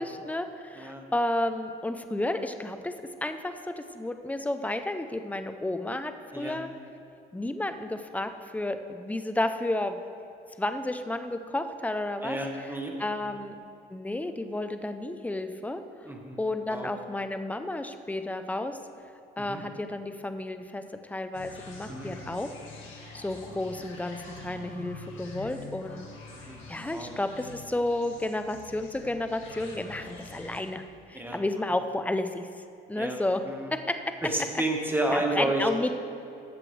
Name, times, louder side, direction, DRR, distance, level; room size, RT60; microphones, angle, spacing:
voice 1, 0.0-2.9 3.2-6.7 7.3-10.0 10.6-12.7 13.0-13.5 13.9-15.8 16.4-18.8 19.4-22.5 23.1-26.1 26.7-30.8 31.1-32.5 32.9-33.4 33.7-34.0 35.1-36.0, left 1 dB, 5° left, 8 dB, 0.6 m, -32 dB
voice 2, 12.2-13.4 16.1-16.4 16.7-16.9 19.4-19.6 21.9-22.1 26.3-26.6 26.9-27.1 31.1-31.4 32.9-33.2 33.4-33.7 34.2-35.7, right 1 dB, 10° right, 1 dB, 1.4 m, -31 dB
sound 1, 21.3-30.6, left 4 dB, 75° left, 2.0 m, -46 dB
14.0 x 7.5 x 3.3 m, 2.7 s
cardioid pair, 90°, 20 cm